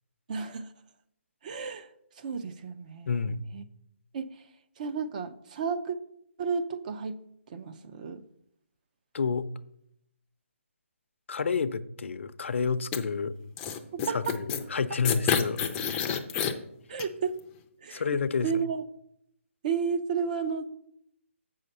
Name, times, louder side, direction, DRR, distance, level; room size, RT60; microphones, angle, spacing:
voice 1, 0.3-0.7 1.4-1.9 2.2-3.1 3.5-3.6 4.1-4.4 4.8-6.0 6.4-7.2 7.5-8.2 13.9-14.4 16.9-17.4 17.8-18.0 18.4-18.8 19.6-20.7, right 6 dB, 35° right, 0.5 m, -32 dB
voice 2, 3.1-3.4 9.1-9.5 11.3-13.3 14.1-15.6 17.9-18.5, left 5 dB, 65° left, 0.6 m, -29 dB
sound 1, 12.9-13.0 13.6-14.6 15.0-16.5 17.0-17.1, left 7 dB, 15° left, 0.5 m, -28 dB
7.5 x 5.7 x 5.4 m
hypercardioid pair, 160°, 7 cm